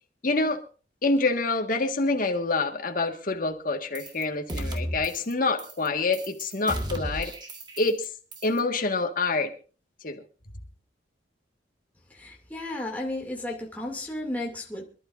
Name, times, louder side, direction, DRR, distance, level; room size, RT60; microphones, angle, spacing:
voice 1, 0.2-0.6 1.0-7.3 7.8-8.1 8.4-9.5 10.0-10.2, left 3 dB, 50° left, 1.7 m, -26 dB
sound 1, 4.0-4.2 4.5-5.3 5.6-5.9 6.1-8.1 8.3-8.6, right 1 dB, 25° right, 1.6 m, -34 dB
voice 2, 12.1-14.8, left 1 dB, 10° left, 2.5 m, -33 dB
27.0 x 12.0 x 2.6 m
head